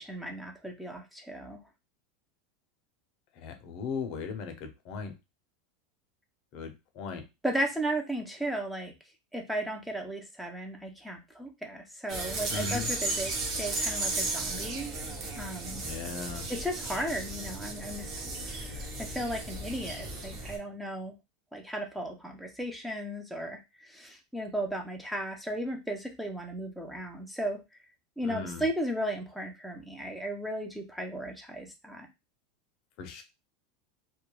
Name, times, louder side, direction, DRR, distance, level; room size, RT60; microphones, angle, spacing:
voice 1, 0.0-1.6 7.4-8.9 9.3-14.9 15.4-15.8 16.5-18.1 18.4-21.1 21.5-27.6 28.2-32.1, right 1 dB, ahead, 2 dB, 0.4 m, -35 dB
voice 2, 3.4-5.1 6.5-7.2 12.5-12.9 15.8-16.5 28.2-28.6 33.0-33.2, left 5 dB, 45° left, 7 dB, 0.5 m, -37 dB
sound 1, 12.1-20.6, right 2 dB, 35° right, 0.8 m, -35 dB
2.3 x 2.1 x 3.0 m, 0.24 s
supercardioid pair, 155°, 0 cm